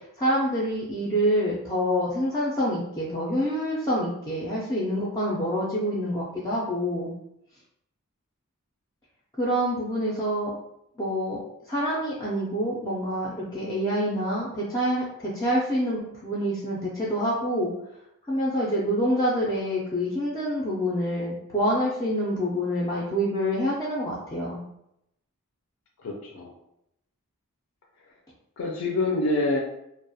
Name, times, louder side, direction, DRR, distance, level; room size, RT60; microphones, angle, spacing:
voice 1, 0.2-7.1 9.4-10.5 11.0-11.4 11.7-17.7 18.3-24.6, equal, 15° left, -6 dB, 0.4 m, -26 dB
voice 2, 26.0-26.5 28.6-29.6, left 2 dB, 85° left, -2 dB, 0.4 m, -26 dB
2.3 x 2.1 x 2.6 m, 0.80 s
head